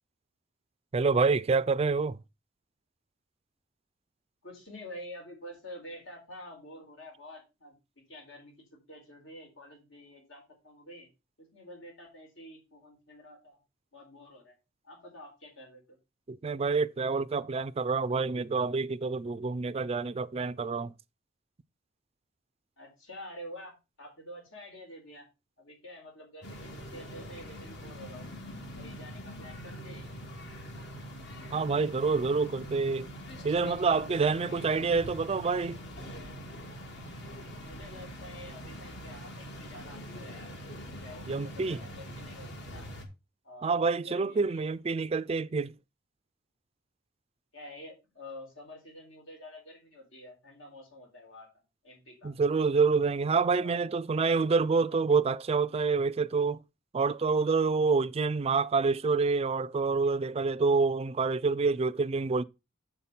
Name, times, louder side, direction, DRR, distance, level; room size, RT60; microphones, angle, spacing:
voice 1, 0.9-2.2 16.3-20.9 31.5-33.1 33.4-35.8 41.3-41.8 43.6-45.7 52.2-56.6 56.9-62.4, right 4 dB, 30° right, 0.4 m, -27 dB
voice 2, 4.4-7.7 8.1-8.5 8.9-11.1 11.4-13.6 13.9-14.6 14.8-16.0 22.8-25.3 25.6-28.3 28.8-30.1 37.6-40.6 41.0-42.9 43.4-44.7 47.5-52.3 53.6-53.8, left 1 dB, 80° left, 4.4 m, -48 dB
sound 1, 26.4-43.0, equal, 65° left, 2.0 m, -43 dB
6.9 x 5.8 x 5.5 m
head